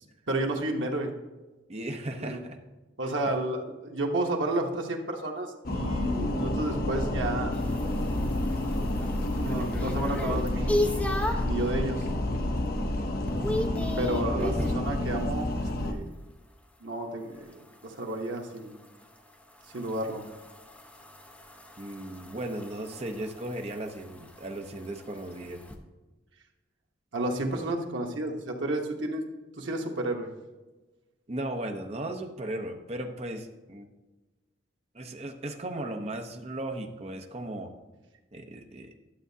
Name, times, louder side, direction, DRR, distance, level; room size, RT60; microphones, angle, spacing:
voice 1, 0.3-1.1 2.2-2.4 3.0-7.6 9.4-10.7 11.4-12.0 14.0-15.5 15.8-16.0 16.8-18.8 19.7-20.3 27.1-29.2 29.6-30.3, right 1 dB, 90° right, 1 dB, 1.0 m, -31 dB
voice 2, 1.7-2.6 3.0-3.1 14.3-14.9 21.8-25.6 31.3-33.9 34.9-37.7 38.3-38.9, right 1 dB, 35° right, 4 dB, 0.7 m, -36 dB
sound 1, 5.6-15.9, left 1 dB, 55° left, 0.7 m, -29 dB
sound 2, 7.5-11.6 12.1-12.5 12.8-14.9 17.4-25.8, left 1 dB, 10° left, 0.7 m, -36 dB
11.5 x 7.0 x 2.7 m, 1.2 s
head